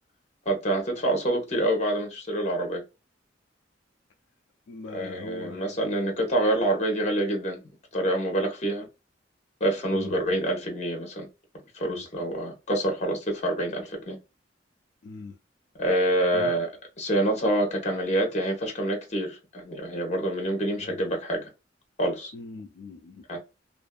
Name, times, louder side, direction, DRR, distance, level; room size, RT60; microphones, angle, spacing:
voice 1, 0.4-2.8 4.9-7.6 7.9-8.9 9.6-11.3 11.7-14.2 15.8-16.7 17.0-21.5 22.0-22.3 23.3-23.4, right 1 dB, 40° left, 1.0 m, -26 dB
voice 2, 4.7-6.2 9.9-10.2 11.9-12.1 15.0-15.4 16.3-16.6 20.8-20.9 22.3-23.4, left 3 dB, 70° left, 0.4 m, -42 dB
2.5 x 2.5 x 2.3 m
head